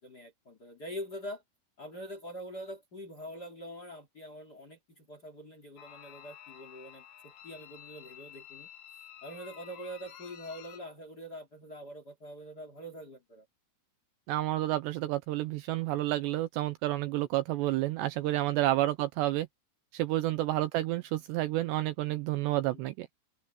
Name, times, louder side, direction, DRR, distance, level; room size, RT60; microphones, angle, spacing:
voice 1, 0.0-1.4 1.8-8.7 9.2-13.5 22.7-22.9, equal, 30° left, 2.1 m, -44 dB
sound 1, 5.8-10.8, left 9 dB, 60° left, 3.8 m, -51 dB
voice 2, 14.3-19.5 19.9-23.1, right 15 dB, 85° right, 2.5 m, -30 dB
omnidirectional pair, 5.6 m